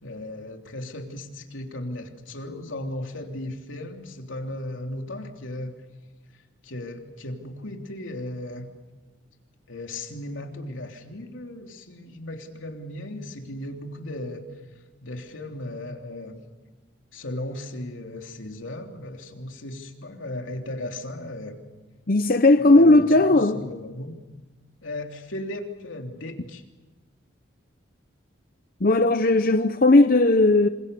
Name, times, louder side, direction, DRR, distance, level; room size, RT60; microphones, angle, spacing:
voice 1, 0.0-5.7 6.6-8.7 9.7-14.4 15.0-16.4 17.1-21.6 22.6-24.1 24.8-26.6, left 1 dB, 85° left, 3.3 m, -36 dB
voice 2, 22.1-23.6 28.8-30.7, left 2 dB, 50° left, 0.8 m, -17 dB
27.5 x 27.0 x 6.9 m
head